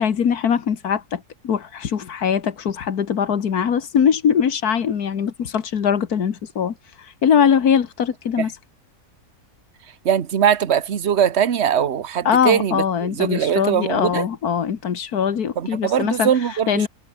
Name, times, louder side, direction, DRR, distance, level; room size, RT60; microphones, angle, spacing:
voice 1, 0.0-6.7 7.2-8.5 12.3-16.3 16.7-16.9, left 7 dB, 75° left, 1.9 m, -21 dB
voice 2, 10.0-14.2 15.6-16.9, right 8 dB, 50° right, 1.4 m, -21 dB
omnidirectional pair, 1.6 m